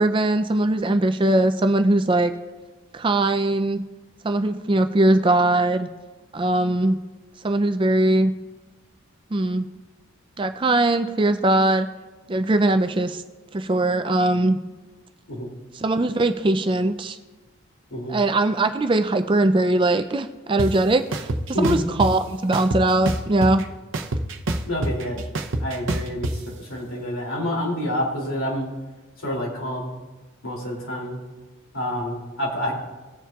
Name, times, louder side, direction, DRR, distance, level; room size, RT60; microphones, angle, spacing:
voice 1, 0.0-2.3 2.9-3.8 4.2-5.9 6.3-7.0 7.4-8.3 9.3-9.7 10.4-11.9 12.3-13.2 13.5-14.6 15.7-17.2 18.1-21.3 21.6-23.6, right 2 dB, 25° right, 8 dB, 0.4 m, -20 dB
sound 1, 20.6-20.7 21.1-22.1 22.5-23.6 23.9-26.3, right 2 dB, 65° right, 0.7 m, -25 dB
voice 2, 24.6-25.2 25.6-28.7 29.2-29.9 30.4-31.2 31.7-32.7, equal, 75° left, -3 dB, 2.8 m, -28 dB
19.0 x 7.3 x 2.4 m, 1.2 s
head